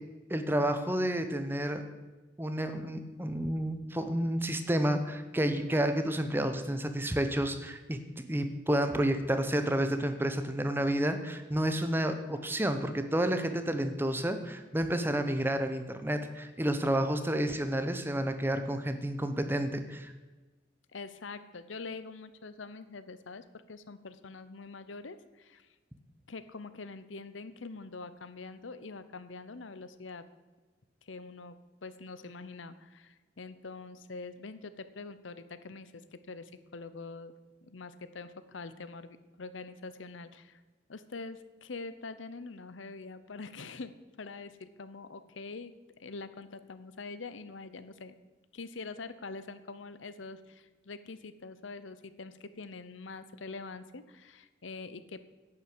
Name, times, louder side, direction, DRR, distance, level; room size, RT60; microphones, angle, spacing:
voice 1, 0.3-1.8 2.4-8.0 8.3-20.1, right 1 dB, 10° right, 8 dB, 0.9 m, -30 dB
voice 2, 20.9-25.7 26.3-30.2 31.0-37.3 37.6-40.6 40.9-45.7 46.0-48.1 48.5-55.2, left 3 dB, 85° left, 13 dB, 0.8 m, -44 dB
10.5 x 8.8 x 7.8 m, 1.2 s
head